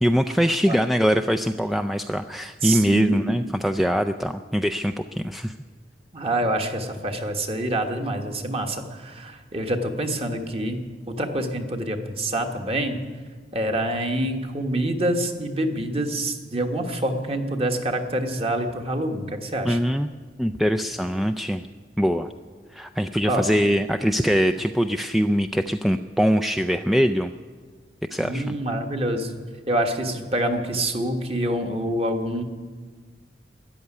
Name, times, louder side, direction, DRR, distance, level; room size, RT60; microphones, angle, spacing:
voice 1, 0.0-5.5 19.6-20.1 20.4-21.6 22.0-22.3 22.7-27.3 28.1-28.6, equal, ahead, 6 dB, 0.3 m, -22 dB
voice 2, 2.6-3.3 6.1-10.8 11.1-13.0 13.5-19.8 23.3-23.4 28.2-29.4 29.7-32.4, right 1 dB, 35° right, 4 dB, 1.4 m, -26 dB
13.5 x 10.5 x 9.8 m, 1.5 s
head